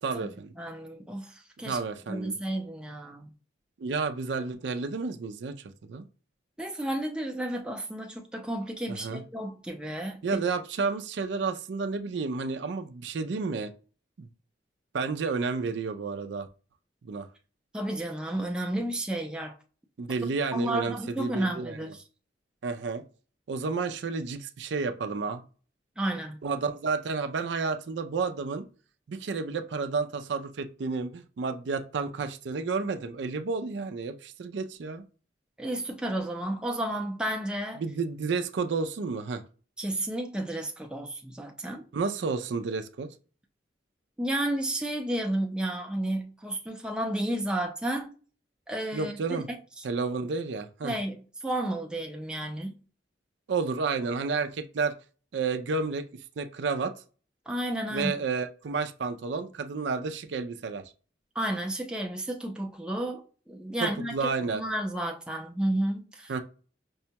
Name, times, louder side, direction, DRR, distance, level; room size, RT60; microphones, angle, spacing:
voice 1, 0.0-0.5 1.6-2.4 3.8-5.6 5.8-6.0 8.9-9.2 10.2-13.7 14.2-14.3 14.9-16.5 17.0-17.3 20.0-21.9 22.6-23.0 23.5-25.4 26.4-28.7 29.1-35.1 37.8-39.4 41.9-43.1 48.9-49.5 49.8-50.9 53.5-54.9 55.3-56.1 56.4-56.9 57.9-60.8 63.8-64.6 66.3-66.4, right 4 dB, 75° right, 0.4 m, -31 dB
voice 2, 0.6-1.8 2.1-3.3 6.6-10.4 17.7-19.6 20.5-22.0 26.0-26.4 35.6-37.8 39.8-41.8 44.2-48.1 48.7-49.8 50.8-52.8 57.5-58.2 61.4-66.3, right 1 dB, 5° right, 0.4 m, -32 dB
5.3 x 2.1 x 2.8 m
head